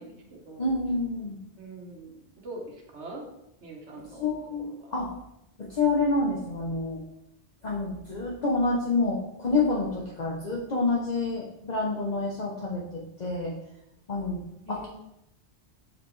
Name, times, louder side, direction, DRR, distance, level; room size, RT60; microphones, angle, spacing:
voice 1, 0.0-0.7 1.6-3.2 3.6-4.3 4.6-4.7 14.7-14.9, right 2 dB, 85° right, 0 dB, 1.6 m, -43 dB
voice 2, 0.6-1.4 4.2-5.1 5.7-7.0 7.6-12.8 13.2-13.5 14.1-14.4 14.7-14.9, left 3 dB, 40° left, -4 dB, 1.0 m, -28 dB
7.1 x 5.0 x 3.2 m, 0.83 s
omnidirectional pair, 1.1 m